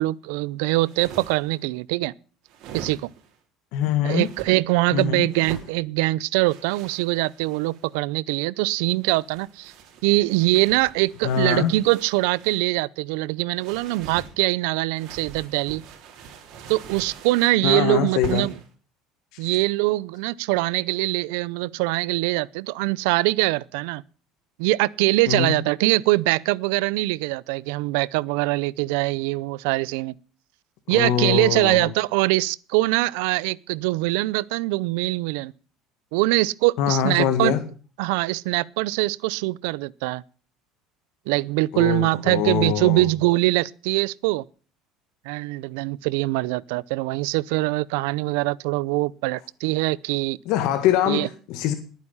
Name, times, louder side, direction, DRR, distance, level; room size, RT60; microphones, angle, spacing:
voice 1, 0.0-2.1 2.7-3.1 4.0-9.7 10.0-15.8 16.7-18.5 19.4-24.0 24.6-30.1 30.9-35.5 36.1-37.5 38.0-40.2 41.3-44.4 45.3-50.4 51.1-51.3, right 20 dB, 85° right, 0.6 m, -23 dB
sound 1, 0.7-1.6 2.5-3.4 4.1-4.5 5.3-5.7 6.5-7.9 8.9-12.7 13.6-14.3 14.9-17.6 18.2-18.7, right 6 dB, 60° right, 4.1 m, -42 dB
voice 2, 3.7-4.3 4.9-5.3 11.2-11.7 17.6-18.5 19.4-19.5 25.3-25.6 30.9-31.9 36.8-37.6 41.7-43.1 50.5-51.7, left 10 dB, 70° left, 2.0 m, -23 dB
20.0 x 9.2 x 5.6 m
cardioid pair, 135°, 0 cm